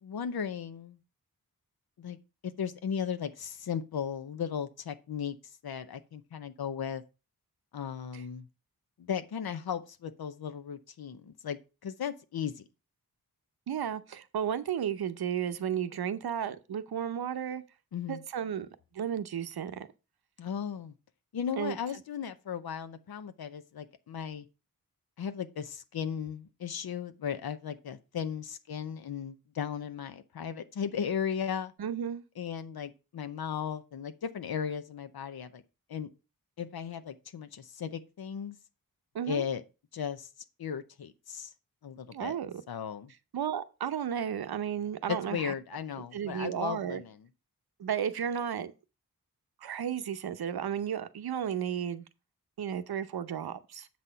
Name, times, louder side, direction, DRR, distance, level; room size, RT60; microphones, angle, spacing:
voice 1, 0.0-1.0 2.0-2.2 2.4-7.0 7.7-8.5 9.0-12.6 17.9-18.2 20.4-20.9 21.3-24.5 25.2-31.7 32.4-35.6 35.9-36.1 36.6-38.6 39.3-39.6 39.9-40.3 40.6-41.5 41.8-42.4 42.7-43.1 45.1-47.2, left 7 dB, 80° left, 0.7 m, -36 dB
voice 2, 13.7-17.6 18.1-18.7 18.9-19.9 21.6-21.8 31.8-32.2 39.1-39.4 42.1-42.6 43.3-45.5 46.1-47.0 47.8-48.7 49.6-52.0 52.6-53.9, right 8 dB, 85° right, 0.7 m, -33 dB
7.7 x 4.2 x 5.5 m
wide cardioid pair, 115°, 36 cm